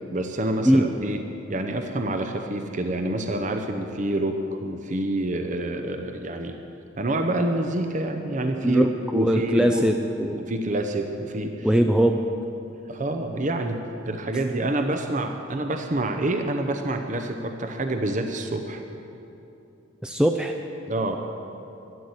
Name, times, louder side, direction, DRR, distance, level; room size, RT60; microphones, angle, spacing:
voice 1, 0.1-1.2 1.5-6.6 7.0-8.9 9.1-10.0 10.3-11.7 12.9-13.8 14.0-18.8 20.9-21.2, right 1 dB, 40° right, 5 dB, 0.8 m, -27 dB
voice 2, 9.1-10.3 11.6-12.2 20.0-20.5, right 1 dB, 5° right, 4 dB, 0.4 m, -20 dB
12.5 x 11.5 x 8.0 m, 2.8 s
head